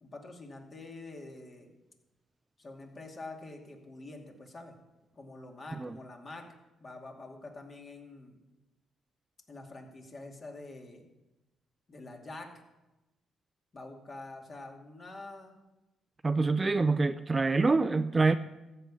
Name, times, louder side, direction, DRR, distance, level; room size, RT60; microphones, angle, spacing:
voice 1, 0.0-1.7 2.6-4.7 5.2-6.5 6.8-8.4 9.5-11.1 11.9-12.5 13.7-15.6, left 2 dB, 35° left, 2.4 m, -46 dB
voice 2, 16.2-18.4, right 3 dB, 25° right, 0.4 m, -26 dB
14.0 x 5.7 x 8.5 m
cardioid pair, 90°, 0 cm